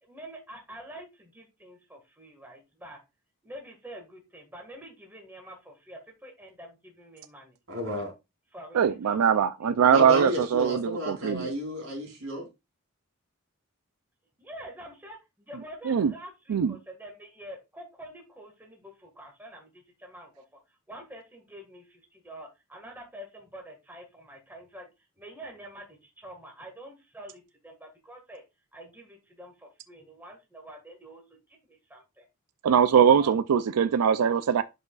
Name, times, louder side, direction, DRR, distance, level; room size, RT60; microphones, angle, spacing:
voice 1, 0.0-3.0 3.4-7.6 8.5-9.5 14.4-24.9 25.2-28.4 28.7-32.3 33.2-33.4 33.8-34.0, right 1 dB, 10° right, 1.7 m, -47 dB
voice 2, 7.7-8.1 9.9-12.5, left 1 dB, 65° right, 3.3 m, -32 dB
voice 3, 8.7-11.5 15.9-16.1 16.5-16.8 32.6-34.6, right 7 dB, 90° right, 0.4 m, -22 dB
11.0 x 4.9 x 2.4 m
head